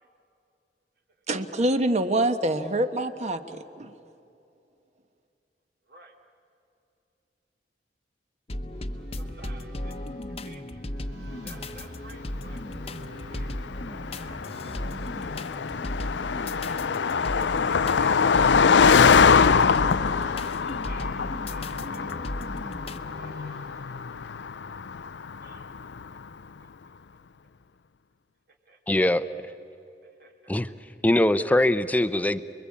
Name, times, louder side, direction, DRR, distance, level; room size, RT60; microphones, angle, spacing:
voice 1, 1.3-3.9, right 1 dB, 40° right, 9 dB, 1.3 m, -25 dB
sound 1, 8.5-23.0, left 1 dB, 35° left, 1.0 m, -36 dB
sound 2, 8.7-24.4, right 1 dB, 85° right, 4.9 m, -51 dB
voice 2, 9.1-10.0 10.4-10.8 11.3-12.6 13.3-14.6 15.2-16.7 17.1-19.1 20.8-22.1 22.3-23.6 25.4-25.7 28.7-28.8 30.2-30.5, right 2 dB, 60° right, 2 dB, 2.9 m, -52 dB
Car passing by, 12.4-26.1, left 6 dB, 90° left, 0.5 m, -24 dB
voice 3, 28.9-29.3 30.5-30.7 31.0-32.4, left 1 dB, 10° left, 12 dB, 0.7 m, -22 dB
29.5 x 22.0 x 8.6 m, 2.7 s
head